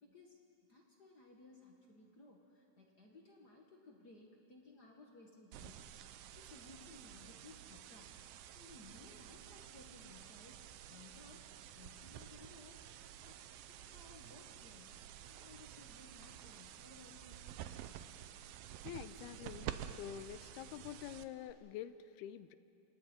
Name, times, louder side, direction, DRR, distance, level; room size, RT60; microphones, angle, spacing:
voice 1, 0.0-0.4 0.7-5.8 6.3-8.2 8.5-10.6 10.9-11.5 11.7-12.8 13.2-17.4, left 3 dB, 65° left, 0 dB, 0.9 m, -59 dB
sound 1, 5.5-21.5, right 11 dB, 75° right, 2.4 m, -51 dB
voice 2, 18.8-19.7 20.0-22.6, left 11 dB, 90° left, 13 dB, 2.7 m, -47 dB
28.0 x 27.0 x 4.4 m, 2.7 s
omnidirectional pair, 4.4 m